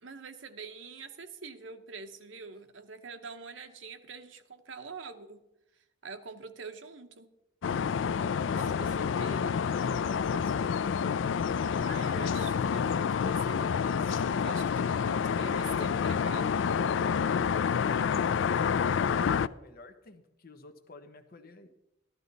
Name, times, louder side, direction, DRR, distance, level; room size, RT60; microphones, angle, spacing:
voice 1, 0.0-5.4 6.0-7.3 8.6-9.6 10.3-10.4 11.8-16.8, right 4 dB, 80° right, 7 dB, 1.0 m, -45 dB
sound 1, 7.6-19.5, left 6 dB, 75° left, 0.4 m, -28 dB
voice 2, 8.2-8.8 9.7-10.7 17.8-21.7, left 2 dB, 50° left, 7 dB, 1.0 m, -50 dB
14.0 x 11.5 x 4.0 m, 0.91 s
head